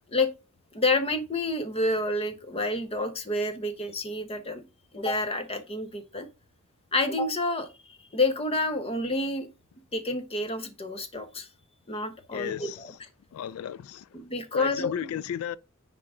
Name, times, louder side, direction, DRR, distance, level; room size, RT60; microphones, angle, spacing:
voice 1, 0.7-4.6 4.9-6.3 6.9-7.7 8.1-9.5 9.9-11.5 11.9-12.9 14.1-14.9, left 2 dB, 25° left, 1.1 m, -28 dB
voice 2, 12.3-13.0 13.3-14.1 14.5-15.6, left 9 dB, 80° left, 0.3 m, -34 dB
9.8 x 3.8 x 3.6 m
head